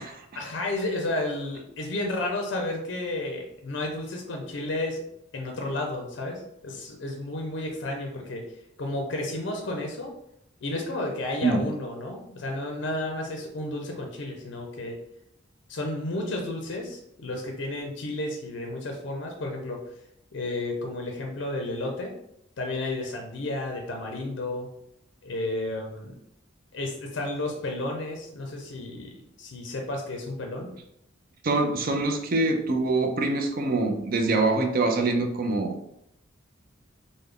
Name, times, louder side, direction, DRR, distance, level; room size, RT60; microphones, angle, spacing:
voice 1, 0.3-5.0 5.3-8.4 8.8-10.1 10.6-15.0 15.7-19.8 20.3-22.1 22.6-24.7 25.2-26.1 26.7-29.1 29.4-30.7, left 2 dB, 60° left, 1 dB, 0.5 m, -32 dB
voice 2, 31.4-35.7, right 2 dB, 45° right, 4 dB, 0.4 m, -24 dB
3.3 x 2.1 x 3.6 m, 0.79 s
head